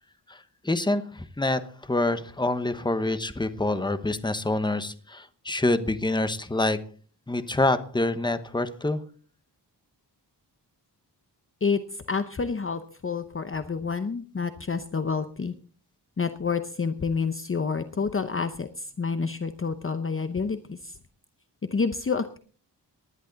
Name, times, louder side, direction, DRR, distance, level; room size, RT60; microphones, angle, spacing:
voice 1, 0.3-6.8 7.3-9.0, left 2 dB, 10° left, 10 dB, 1.1 m, -26 dB
voice 2, 11.6-15.5 16.2-21.0 21.7-22.4, left 5 dB, 30° left, 10 dB, 0.8 m, -29 dB
19.0 x 11.0 x 4.0 m, 0.41 s
wide cardioid pair, 145°, 41 cm